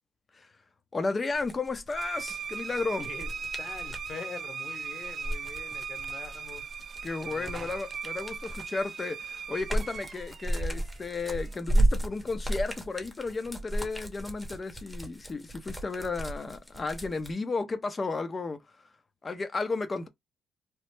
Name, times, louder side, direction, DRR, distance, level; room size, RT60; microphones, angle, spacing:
voice 1, 0.9-3.1 7.0-18.6 19.2-20.1, left 3 dB, 30° left, 0.6 m, -33 dB
sound 1, 1.3-4.1 5.0-8.8 9.2-17.3, right 1 dB, 5° left, 0.9 m, -33 dB
sound 2, 2.0-11.6, right 6 dB, 50° right, 0.3 m, -39 dB
voice 2, 3.0-6.8 7.2-7.7, left 5 dB, 50° left, 1.0 m, -44 dB
3.1 x 2.0 x 3.2 m
cardioid pair, 90°, 0 cm